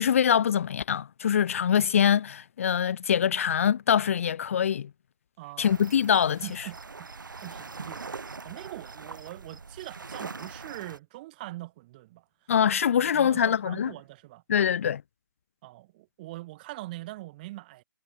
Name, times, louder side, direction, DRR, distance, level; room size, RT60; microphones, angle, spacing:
voice 1, 0.0-4.9 5.6-6.6 12.5-13.9 14.5-15.0, left 8 dB, 40° left, 0.8 m, -24 dB
voice 2, 5.4-5.8 6.4-7.1 7.4-12.2 13.1-14.7 15.6-17.8, right 18 dB, 25° right, 4.3 m, -42 dB
sound 1, 5.6-11.0, right 4 dB, 65° right, 3.0 m, -42 dB
figure-of-eight pair, 145°, 11 cm